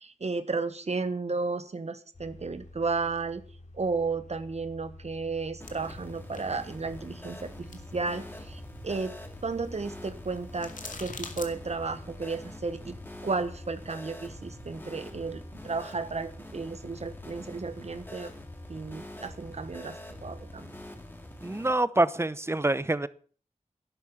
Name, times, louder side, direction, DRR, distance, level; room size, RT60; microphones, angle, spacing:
voice 1, 0.0-3.4 3.7-9.2 9.4-10.7 11.0-13.0 13.2-18.3 18.7-20.7, right 4 dB, 55° right, 11 dB, 1.2 m, -33 dB
sound 1, 2.1-20.9, left 1 dB, 65° left, 3.0 m, -50 dB
sound 2, 5.6-11.5, left 4 dB, 85° left, 2.4 m, -48 dB
sound 3, 5.6-21.7, left 1 dB, 15° left, 2.8 m, -45 dB
voice 2, 21.4-23.1, right 2 dB, 20° right, 16 dB, 0.8 m, -26 dB
11.5 x 11.5 x 7.2 m, 0.42 s
wide cardioid pair, 100°, 13 cm